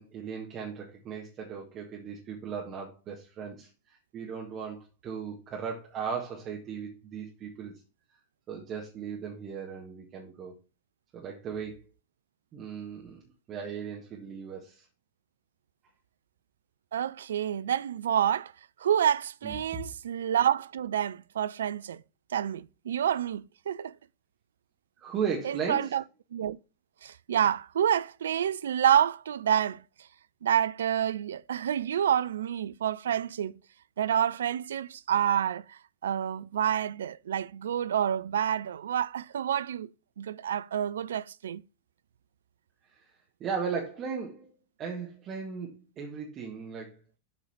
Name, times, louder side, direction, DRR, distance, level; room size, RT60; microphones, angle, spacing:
voice 1, 0.0-7.7 8.5-10.5 11.1-11.9 12.5-13.2 13.5-14.8 19.4-19.6 25.0-26.0 43.4-44.5 44.8-47.2, right 6 dB, 30° right, 1.5 m, -37 dB
voice 2, 16.9-18.5 18.8-22.0 22.3-23.9 25.4-26.0 26.3-26.6 27.0-29.8 30.4-33.6 34.0-39.9 40.2-41.6, right 9 dB, 65° right, 0.3 m, -28 dB
7.6 x 3.9 x 5.8 m
figure-of-eight pair, 90°, 0 cm